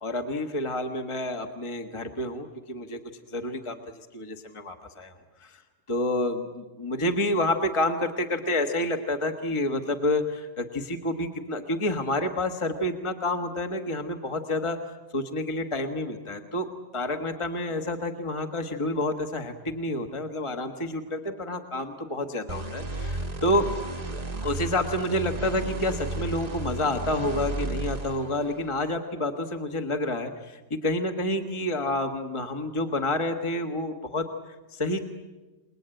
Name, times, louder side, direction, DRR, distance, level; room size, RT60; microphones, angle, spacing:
voice 1, 0.0-3.0 3.3-5.1 5.4-5.6 5.9-14.8 15.1-16.7 16.9-23.7 24.4-34.3 34.7-35.0, left 1 dB, 25° left, 5 dB, 1.4 m, -29 dB
sound 1, 22.5-28.9, right 2 dB, 35° right, 1.0 m, -33 dB
29.0 x 20.0 x 9.0 m, 1.2 s
omnidirectional pair, 1.3 m